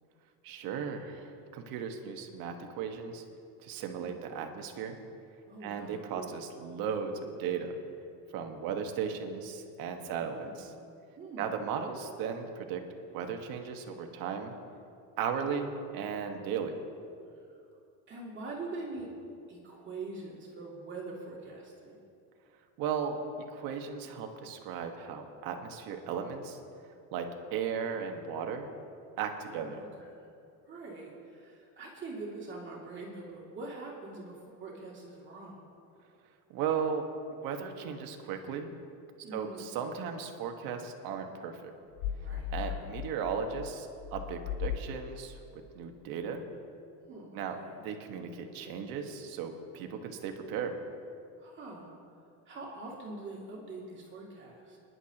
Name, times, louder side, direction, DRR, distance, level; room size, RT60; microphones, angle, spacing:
voice 1, 0.4-3.2 3.6-5.0 5.6-7.1 7.4-7.7 8.3-10.7 11.4-12.8 13.1-14.5 15.2-16.8 22.8-23.2 23.5-26.6 27.1-27.2 27.5-28.7 29.2-29.8 36.5-38.7 39.3-41.7 42.5-46.4 47.3-47.6 47.8-50.7, right 6 dB, 60° right, 4 dB, 1.5 m, -36 dB
voice 2, 5.5-6.3 10.0-10.7 11.2-11.5 17.3-17.5 18.1-19.1 19.5-22.0 29.4-30.3 30.6-35.6 39.2-39.7 42.2-42.9 47.1-47.8 51.4-51.9 52.5-54.8, right 3 dB, 30° right, -4 dB, 2.7 m, -44 dB
sound 1, 42.0-45.4, left 9 dB, 80° left, 0.8 m, -37 dB
25.5 x 11.0 x 3.0 m, 2.5 s
cardioid pair, 150°, 39 cm